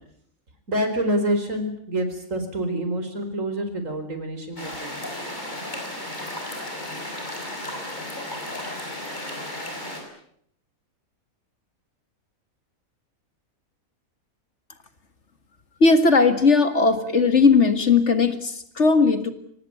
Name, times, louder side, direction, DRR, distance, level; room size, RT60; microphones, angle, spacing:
voice 1, 0.7-5.0, right 1 dB, 65° right, 7 dB, 4.8 m, -27 dB
sound 1, 4.6-10.0, left 1 dB, 30° left, 6.5 m, -34 dB
voice 2, 15.8-19.3, left 4 dB, 55° left, 10 dB, 2.2 m, -18 dB
25.0 x 18.5 x 9.5 m, 0.69 s
omnidirectional pair, 1.5 m